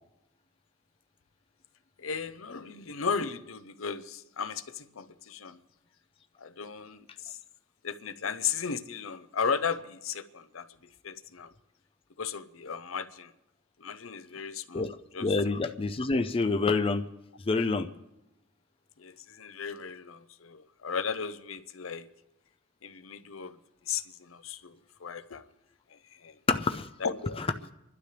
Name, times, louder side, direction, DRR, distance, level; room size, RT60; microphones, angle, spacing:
voice 1, 2.0-5.6 6.4-7.4 7.8-11.5 12.2-13.3 13.8-15.3 19.0-22.1 22.8-23.6 23.9-25.5 25.9-26.4 27.0-27.7, left 6 dB, 80° left, 0.7 m, -36 dB
voice 2, 15.2-17.1 17.5-17.9 26.5-26.9, left 3 dB, 25° left, 0.4 m, -27 dB
27.5 x 12.0 x 3.3 m
head